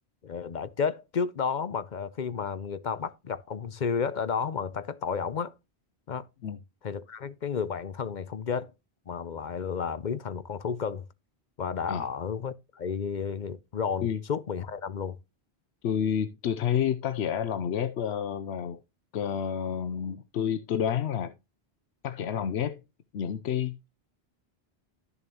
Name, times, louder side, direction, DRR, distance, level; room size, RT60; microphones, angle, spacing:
voice 1, 0.2-5.5 6.1-6.3 6.8-8.7 9.1-11.0 11.6-15.2, left 6 dB, 50° left, 0.7 m, -32 dB
voice 2, 15.8-18.8 19.1-21.3 22.0-22.8 23.1-23.9, left 8 dB, 90° left, 0.9 m, -29 dB
12.5 x 6.9 x 2.9 m
omnidirectional pair, 1.1 m